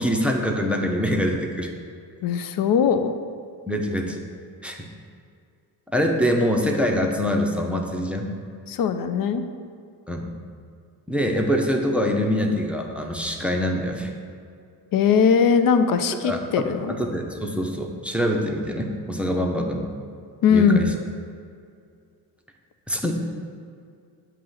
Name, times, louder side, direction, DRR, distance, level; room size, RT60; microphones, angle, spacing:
voice 1, 0.0-1.7 3.7-4.2 4.6-4.9 5.9-8.3 10.1-10.3 11.1-14.1 16.2-19.9 20.5-20.8 22.9-23.1, equal, 5° right, 2 dB, 0.6 m, -24 dB
voice 2, 2.2-3.1 8.7-9.4 14.9-16.9 20.4-20.9, left 6 dB, 45° left, 10 dB, 0.5 m, -20 dB
7.4 x 2.7 x 5.5 m, 2.3 s
supercardioid pair, 60°, 48 cm